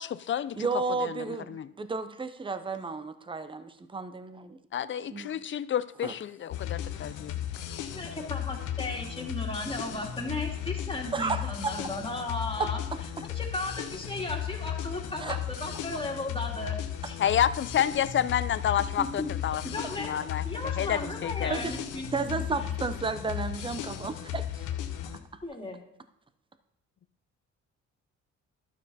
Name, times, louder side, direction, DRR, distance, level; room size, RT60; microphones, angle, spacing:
voice 1, 0.0-0.7 1.0-1.7 4.7-7.3 17.2-20.4 20.8-21.6, left 9 dB, 40° left, 15 dB, 0.5 m, -29 dB
voice 2, 0.6-4.6 5.1-5.3 6.0-6.1 11.1-11.7 12.6-12.7 15.2-15.7 21.5-21.8 22.1-24.7 25.1-25.2, right 4 dB, 15° right, 11 dB, 0.7 m, -33 dB
sound 1, 6.5-25.2, left 10 dB, 85° left, 1.0 m, -35 dB
voice 3, 8.0-12.8 13.3-16.8 17.0-17.2 19.0-19.3 19.7-20.1 20.4-22.7 25.4-25.8, left 2 dB, 15° left, 0 dB, 2.4 m, -35 dB
12.0 x 7.1 x 4.2 m, 0.75 s
cardioid pair, 90°, 30 cm